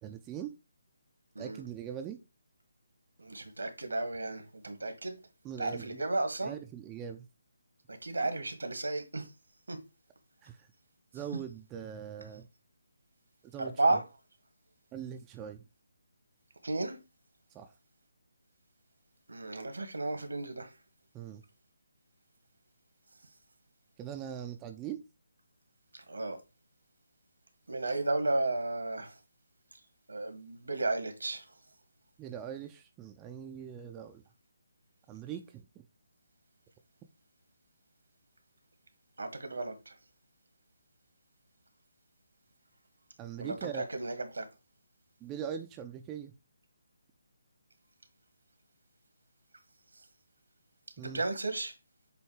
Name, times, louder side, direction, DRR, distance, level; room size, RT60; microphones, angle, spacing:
voice 1, 0.0-0.5 1.4-2.2 5.4-6.0 6.4-7.3 10.4-10.7 11.1-12.5 13.4-14.0 14.9-15.6 17.5-17.7 21.1-21.4 24.0-25.0 32.2-34.2 35.1-35.8 43.2-43.8 45.2-46.3 51.0-51.2, right 9 dB, 15° right, 0.6 m, -41 dB
voice 2, 3.2-5.2 5.6-6.5 7.9-9.3 9.7-9.8 13.6-14.0 16.6-17.0 19.3-20.7 26.1-26.4 27.7-29.1 30.1-31.4 39.2-39.9 43.4-44.4 51.1-51.7, right 2 dB, 75° right, 1.6 m, -33 dB
7.8 x 2.6 x 4.9 m
figure-of-eight pair, 145°, 0 cm